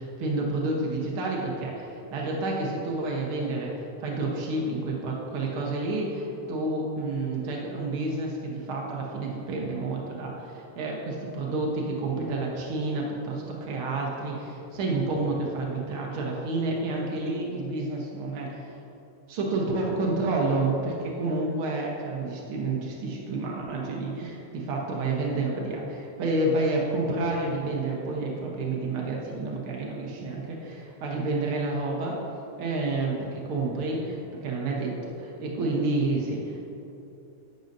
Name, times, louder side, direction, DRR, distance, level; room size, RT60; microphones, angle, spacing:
voice 1, 0.0-3.7 4.0-18.7 19.3-32.2 32.6-36.7, right 2 dB, 80° right, -2 dB, 1.2 m, -29 dB
10.5 x 8.9 x 2.7 m, 3.0 s
omnidirectional pair, 3.8 m